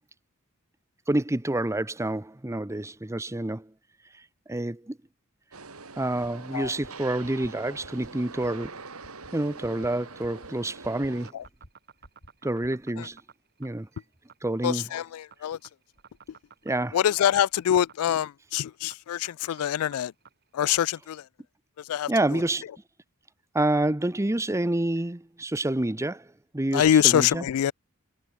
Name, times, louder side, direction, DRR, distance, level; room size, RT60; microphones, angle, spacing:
voice 1, 1.1-3.7 4.5-5.0 6.0-8.8 9.3-11.3 12.4-13.2 13.6-13.9 14.4-14.8 16.6-17.0 22.1-22.6 23.5-26.3 26.5-27.4, right 1 dB, 15° right, 0.8 m, -28 dB
sound 1, 5.5-11.3, right 4 dB, 75° right, 3.3 m, -43 dB
sound 2, 6.8-6.9 7.2-7.5 7.8-8.1 8.4-8.7 9.0-9.3 9.6-9.9 10.2-10.5 10.8-11.1 11.4-11.7 12.0-12.3 12.6-12.7, equal, 55° left, 5.4 m, -50 dB
sound 3, 11.3-20.8, right 6 dB, 50° right, 4.8 m, -53 dB
voice 2, 14.6-15.6 16.9-20.1 20.5-21.2 21.8-22.4 26.7-27.7, left 10 dB, 75° left, 0.3 m, -25 dB
head